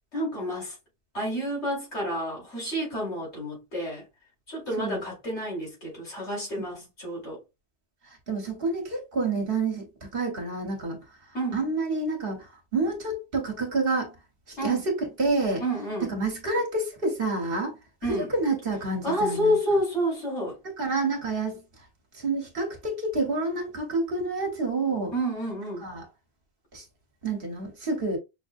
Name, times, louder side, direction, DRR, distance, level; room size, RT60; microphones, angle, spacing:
voice 1, 0.1-0.7 1.1-4.0 4.5-7.4 11.3-11.6 14.6-14.9 15.6-16.1 18.0-18.3 19.0-20.6 25.1-25.9, equal, 90° left, 2.9 m, -29 dB
voice 2, 8.3-9.9 10.1-11.0 11.5-12.5 12.7-14.1 14.6-14.9 15.2-15.6 16.1-17.8 18.1-19.6 20.8-21.6 22.2-25.1 25.8-26.0 26.7-26.8 27.2-28.2, right 3 dB, 55° right, 1.4 m, -28 dB
5.8 x 2.2 x 2.5 m
omnidirectional pair, 1.1 m